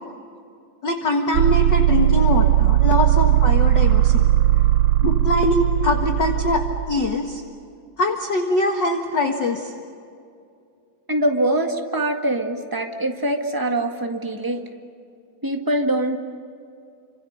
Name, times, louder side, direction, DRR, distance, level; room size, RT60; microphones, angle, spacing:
voice 1, 0.8-4.2 5.0-7.4 8.0-9.7, left 2 dB, 45° left, 3 dB, 1.8 m, -23 dB
sound 1, 1.3-6.9, right 13 dB, 75° right, 2.1 m, -18 dB
voice 2, 11.1-14.7 15.4-16.2, right 1 dB, 10° right, 3 dB, 1.2 m, -23 dB
29.5 x 26.5 x 6.8 m, 2.4 s
omnidirectional pair, 3.6 m